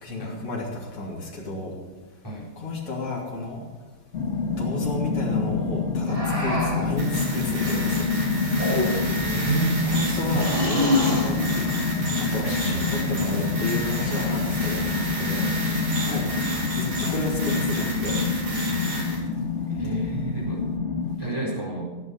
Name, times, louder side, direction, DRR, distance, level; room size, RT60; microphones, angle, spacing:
voice 1, 0.0-1.7 2.6-3.6 4.6-8.1 9.9-11.7 12.2-15.5 16.0-16.3 16.7-18.2 19.8-20.0, left 2 dB, 90° left, -2 dB, 3.7 m, -32 dB
sound 1, 4.1-21.1, left 4 dB, 35° left, 1.8 m, -27 dB
sound 2, 6.1-7.0 8.5-9.2 10.3-11.3 12.6-13.0 13.9-14.6, left 1 dB, 20° right, 4.8 m, -27 dB
sound 3, 7.0-19.2, right 1 dB, 70° right, 4.6 m, -31 dB
voice 2, 9.2-10.5 12.4-12.6 16.1-16.3 19.8-20.7 21.2-21.9, right 3 dB, 10° left, -3 dB, 4.4 m, -30 dB
16.5 x 8.9 x 6.6 m, 1.2 s
omnidirectional pair, 2.3 m